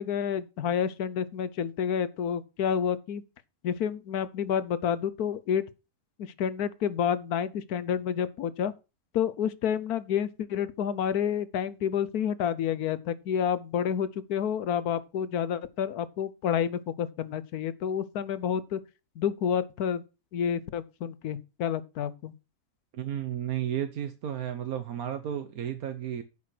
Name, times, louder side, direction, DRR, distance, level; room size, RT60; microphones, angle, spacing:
voice 1, 0.0-3.2 3.6-5.7 6.2-8.7 9.1-18.8 19.2-20.0 20.3-22.3, left 8 dB, 80° left, 1.3 m, -29 dB
voice 2, 22.9-26.2, right 10 dB, 75° right, 1.3 m, -33 dB
9.5 x 5.9 x 5.9 m
omnidirectional pair, 1.6 m